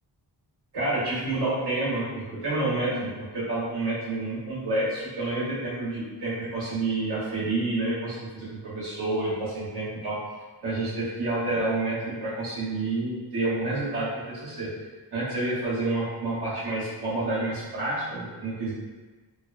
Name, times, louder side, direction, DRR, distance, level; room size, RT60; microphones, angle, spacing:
voice 1, 0.7-10.2 10.6-14.7 15.1-18.7, right 2 dB, 75° right, -8 dB, 1.1 m, -29 dB
2.7 x 2.1 x 2.4 m, 1.3 s
wide cardioid pair, 160°, 39 cm